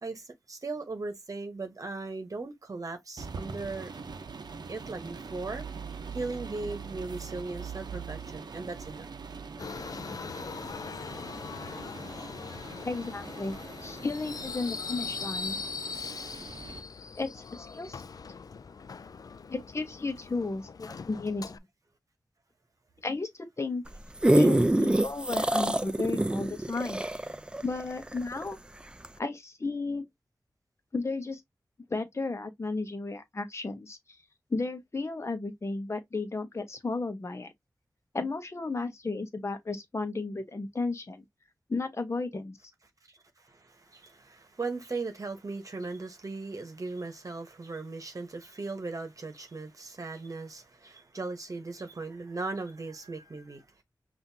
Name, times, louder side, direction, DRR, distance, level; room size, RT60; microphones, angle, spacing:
voice 1, 0.0-3.9 4.7-5.7 6.1-9.1 43.4-53.7, right 3 dB, 50° right, 1.0 m, -38 dB
sound 1, 3.2-16.8, right 5 dB, 75° right, 0.7 m, -43 dB
Subway metro underground, 9.6-21.6, left 5 dB, 60° left, 0.3 m, -40 dB
voice 2, 12.8-13.6 13.8-15.6 16.7-16.8 17.1-18.0 19.5-21.6 23.0-23.8 24.3-27.0 27.6-28.6 29.2-30.0 30.9-31.4 31.9-34.0 34.5-37.5 38.1-41.2 41.7-42.6, left 3 dB, 40° left, 0.9 m, -33 dB
sound 2, 23.9-28.5 29.0-29.1, right 1 dB, 15° right, 0.4 m, -25 dB
5.6 x 2.6 x 2.7 m
wide cardioid pair, 80°, 7 cm